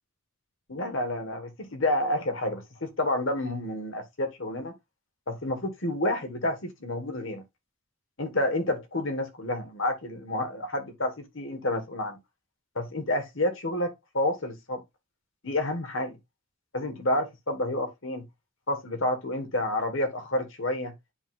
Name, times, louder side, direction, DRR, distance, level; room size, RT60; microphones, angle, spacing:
voice 1, 0.7-4.7 5.3-7.4 8.2-12.2 12.7-14.8 15.4-16.2 16.7-18.2 18.7-20.9, left 1 dB, 65° left, 1.7 m, -29 dB
10.5 x 3.8 x 2.5 m
head